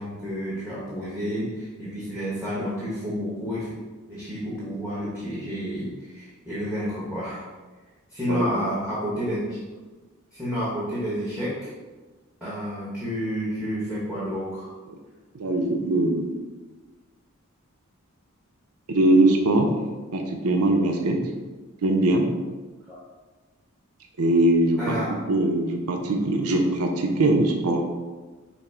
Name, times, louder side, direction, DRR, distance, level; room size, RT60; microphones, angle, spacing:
voice 1, 0.0-3.7 4.1-7.5 8.1-9.6 10.3-11.7 12.4-14.7 22.9-23.0 24.8-25.3, equal, 5° right, -9 dB, 1.0 m, -30 dB
voice 2, 15.3-16.3 18.9-19.7 20.1-21.3 21.8-22.3 24.2-25.0 25.3-27.9, right 2 dB, 85° right, 2 dB, 0.6 m, -21 dB
5.7 x 2.0 x 4.4 m, 1.3 s
head